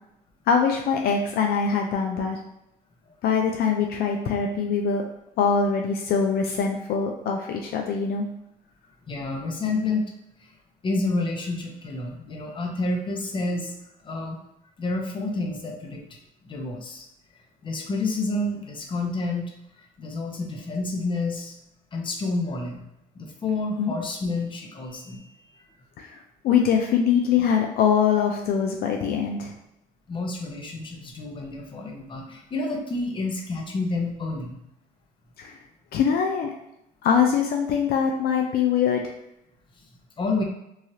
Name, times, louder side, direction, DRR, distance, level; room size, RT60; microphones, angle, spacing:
voice 1, 0.5-2.4 3.2-5.0 5.4-8.3 23.8-23.9 26.0-26.2 26.4-29.5 35.4-35.6 35.9-36.5 37.0-39.0, left 6 dB, 65° left, 2 dB, 0.4 m, -23 dB
voice 2, 9.1-10.1 10.8-13.7 14.0-14.4 14.8-16.0 16.4-17.0 17.6-19.5 19.8-21.5 21.9-22.8 23.2-25.3 30.1-34.6 40.2-40.4, left 2 dB, 30° left, 1 dB, 0.6 m, -29 dB
3.1 x 2.3 x 2.7 m, 0.83 s
cardioid pair, 110°, 17 cm